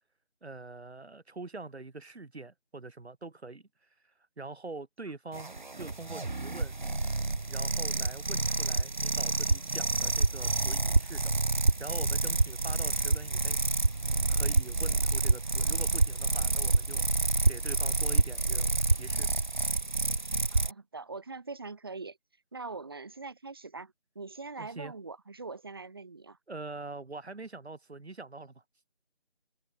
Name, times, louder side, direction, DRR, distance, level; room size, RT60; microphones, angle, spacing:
voice 1, 0.4-3.6 4.4-6.7 7.5-11.4 11.8-13.6 14.3-19.3 24.6-24.9 26.5-28.6, right 3 dB, 75° right, 1.5 m, -44 dB
sound 1, 5.3-20.7, right 3 dB, 45° right, 1.0 m, -28 dB
voice 2, 20.5-22.2 22.5-26.4, right 3 dB, 20° right, 2.2 m, -42 dB
figure-of-eight pair, 170°, 33 cm